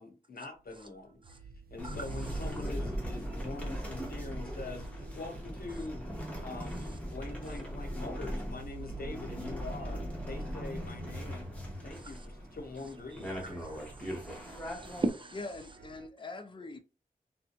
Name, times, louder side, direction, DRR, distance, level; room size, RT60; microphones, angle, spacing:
voice 1, 0.0-6.1 6.4-6.8 7.1-12.2 12.5-13.6, left 3 dB, 75° left, 0.9 m, -44 dB
sound 1, 0.6-16.1, right 2 dB, 85° right, 0.5 m, -48 dB
sound 2, 1.8-15.1, equal, 10° left, 1.1 m, -39 dB
voice 2, 1.8-2.7 5.8-5.9 6.7-7.0 7.4-7.6 11.9-12.3 12.8-15.5, right 2 dB, 35° right, 0.6 m, -41 dB
voice 3, 15.4-16.8, left 3 dB, 35° left, 0.5 m, -42 dB
3.8 x 2.2 x 2.9 m
wide cardioid pair, 65°, 15 cm